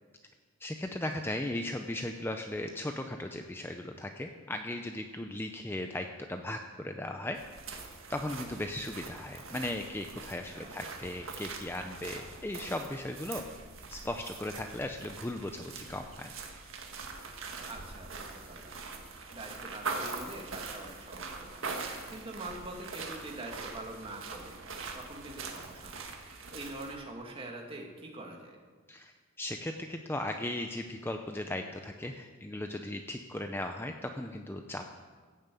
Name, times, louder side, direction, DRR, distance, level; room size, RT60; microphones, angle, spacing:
voice 1, 0.6-7.4 8.1-13.4 13.9-16.3 28.9-34.9, left 1 dB, 10° left, 5 dB, 0.5 m, -37 dB
sound 1, 7.4-27.0, right 4 dB, 65° right, 1.8 m, -43 dB
voice 2, 17.7-18.7 19.3-24.5 24.9-28.6, right 2 dB, 25° right, 0 dB, 2.0 m, -44 dB
15.5 x 7.3 x 8.4 m, 1.5 s
head